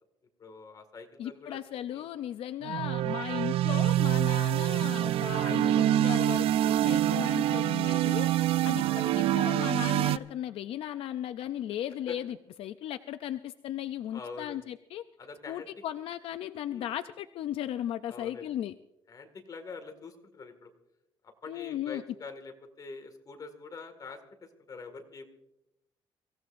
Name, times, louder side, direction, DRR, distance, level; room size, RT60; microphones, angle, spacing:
voice 1, 0.4-1.6 1.9-2.1 5.5-5.6 7.0-7.2 8.6-8.7 12.1-12.2 14.1-14.6 15.2-15.7 16.7-16.9 18.1-18.5 19.1-20.7 21.2-24.2 24.7-25.3, left 4 dB, 40° left, 6 dB, 1.9 m, -45 dB
voice 2, 1.2-8.3 8.6-15.0 15.5-18.7 21.5-22.0, left 11 dB, 80° left, 11 dB, 0.4 m, -36 dB
sound 1, 2.6-10.2, right 13 dB, 85° right, 0.4 m, -26 dB
24.0 x 15.5 x 2.5 m, 0.91 s
cardioid pair, 125°, 10 cm